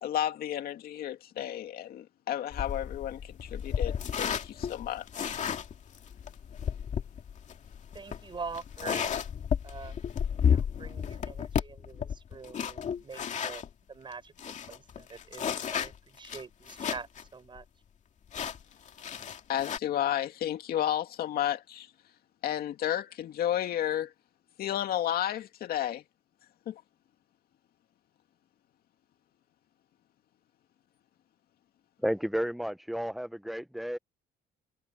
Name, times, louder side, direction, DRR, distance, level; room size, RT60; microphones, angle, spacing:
voice 1, 0.0-5.4 19.5-21.9 22.4-24.1 24.6-26.0 26.7-26.8, left 11 dB, 65° left, 2.2 m, -32 dB
sound 1, 2.5-13.7 14.1-14.2 14.4-17.2 17.6-17.7 18.3-19.8, left 8 dB, 45° left, 2.4 m, -33 dB
voice 2, 7.9-9.2 9.6-10.0 10.4-13.6 13.9-17.7, right 5 dB, 30° right, 5.9 m, -44 dB
voice 3, 32.0-34.0, equal, ahead, 0.5 m, -32 dB
cardioid pair, 110°, 17 cm